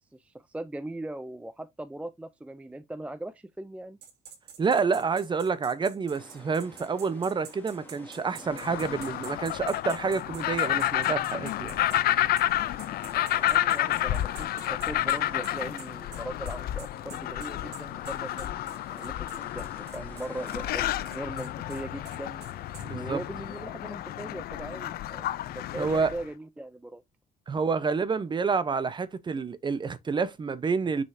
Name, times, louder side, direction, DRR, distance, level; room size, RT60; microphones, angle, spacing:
voice 1, 0.1-4.0 13.4-18.5 18.9-22.5 22.9-27.0, right 1 dB, 5° right, 0.5 m, -40 dB
sound 1, 4.0-12.0 12.4-12.5 12.8-22.9, right 8 dB, 75° right, 2.5 m, -48 dB
voice 2, 4.6-11.8 22.8-23.2 25.8-26.1 27.5-31.0, right 5 dB, 25° right, 0.8 m, -28 dB
sound 2, 6.1-23.6, left 1 dB, 10° left, 2.4 m, -51 dB
sound 3, 8.5-26.2, left 13 dB, 65° left, 0.6 m, -30 dB
6.5 x 5.4 x 2.7 m
cardioid pair, 110°, 17 cm